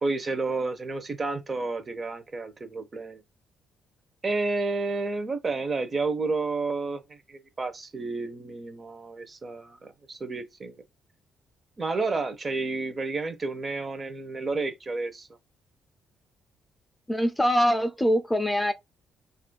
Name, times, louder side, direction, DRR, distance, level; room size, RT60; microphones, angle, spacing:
voice 1, 0.0-3.2 4.2-10.8 11.8-15.3, right 3 dB, 35° right, 0.7 m, -31 dB
voice 2, 17.1-18.7, equal, 10° left, 0.4 m, -23 dB
4.2 x 2.5 x 2.2 m
cardioid pair, 90°, 0 cm